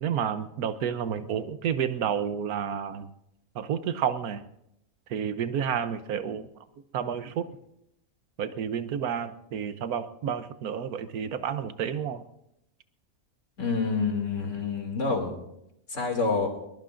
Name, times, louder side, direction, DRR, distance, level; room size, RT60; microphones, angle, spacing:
voice 1, 0.0-3.1 3.5-4.4 5.1-6.5 6.9-7.5 8.4-12.2, right 8 dB, 85° right, 12 dB, 1.3 m, -30 dB
voice 2, 13.6-15.4 15.9-16.5, left 4 dB, 55° left, 3 dB, 3.0 m, -27 dB
21.5 x 21.0 x 2.6 m, 0.82 s
omnidirectional pair, 1.5 m